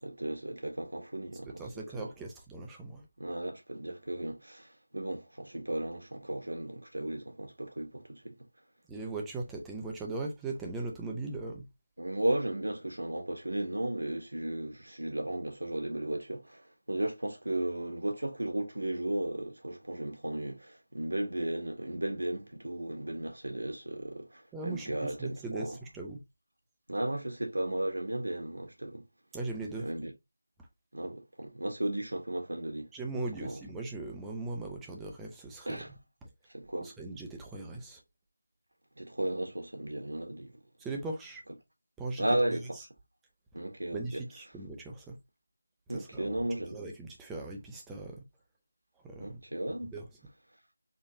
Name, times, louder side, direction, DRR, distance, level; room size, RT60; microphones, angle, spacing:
voice 1, 0.0-2.1 3.2-8.3 12.0-25.8 26.9-29.0 29.8-30.1 30.9-32.9 33.1-33.6 35.6-35.9 36.5-36.9 39.0-40.5 42.2-42.7 43.5-44.2 45.9-46.8 49.2-49.9, right 1 dB, 90° right, 1.8 m, -35 dB
voice 2, 1.6-3.1 8.9-11.6 24.5-26.2 29.3-29.9 32.9-35.8 36.8-38.0 40.8-41.4 42.0-42.3 43.9-45.1 45.9-46.4 46.7-48.2 49.0-49.4 49.9-50.1, right 3 dB, 5° right, 0.4 m, -39 dB
4.2 x 2.9 x 3.0 m
figure-of-eight pair, 175°, 0 cm